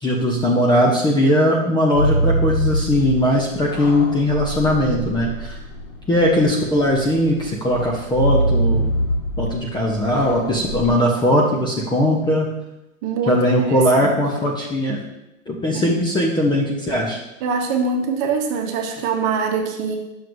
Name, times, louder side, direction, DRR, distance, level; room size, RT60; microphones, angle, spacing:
voice 1, 0.0-5.5 6.1-8.9 9.4-12.5 13.3-15.0 15.5-17.2, equal, 10° left, -2 dB, 0.7 m, -19 dB
sound 1, 1.9-10.9, right 1 dB, 60° left, 2.2 m, -25 dB
voice 2, 13.0-14.2 15.7-15.8 17.4-20.0, right 5 dB, 40° right, 3 dB, 1.2 m, -23 dB
8.9 x 6.2 x 2.6 m, 0.93 s
hypercardioid pair, 125°, 42 cm